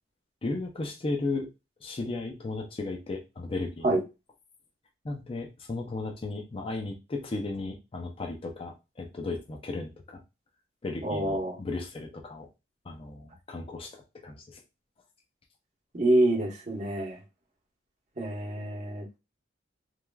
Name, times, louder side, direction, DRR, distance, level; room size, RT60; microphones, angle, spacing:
voice 1, 0.4-1.5 1.8-4.0 5.0-10.2 10.8-12.5 12.8-14.6, left 3 dB, 30° left, 2 dB, 0.5 m, -35 dB
voice 2, 11.0-11.6 15.9-17.2 18.2-19.2, right 1 dB, 40° right, -1 dB, 0.9 m, -27 dB
3.1 x 2.4 x 2.2 m, 0.26 s
head